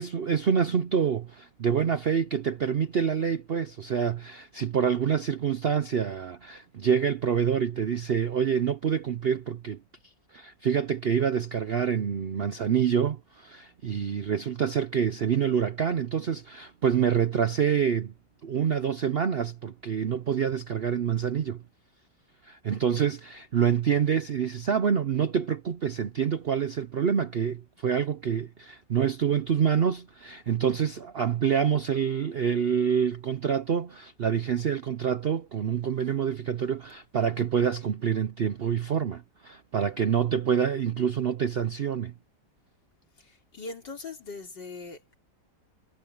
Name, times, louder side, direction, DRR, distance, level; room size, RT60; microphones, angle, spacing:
voice 1, 0.0-9.8 10.3-18.1 18.4-21.6 22.4-42.1, right 7 dB, 65° right, 0.5 m, -27 dB
voice 2, 43.2-45.2, left 3 dB, 90° left, 4.4 m, -41 dB
omnidirectional pair, 1.9 m